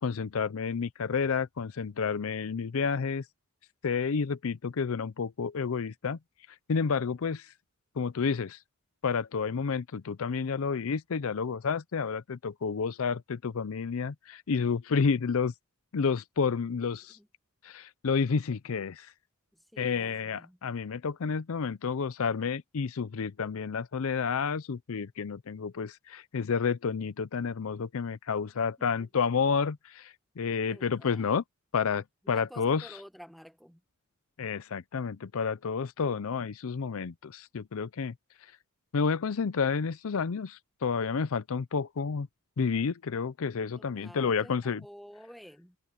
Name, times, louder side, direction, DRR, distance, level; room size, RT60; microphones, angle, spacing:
voice 1, 0.0-3.2 3.8-6.2 6.7-7.5 8.0-8.6 9.0-15.5 15.9-17.2 17.6-19.1 19.8-31.4 31.7-32.9 34.4-38.1 38.9-42.3 42.6-44.8, left 5 dB, 65° left, 0.5 m, -30 dB
voice 2, 16.8-17.3 19.5-20.6 28.5-29.1 30.6-31.3 32.3-33.8 43.8-45.8, equal, ahead, 1.2 m, -51 dB
head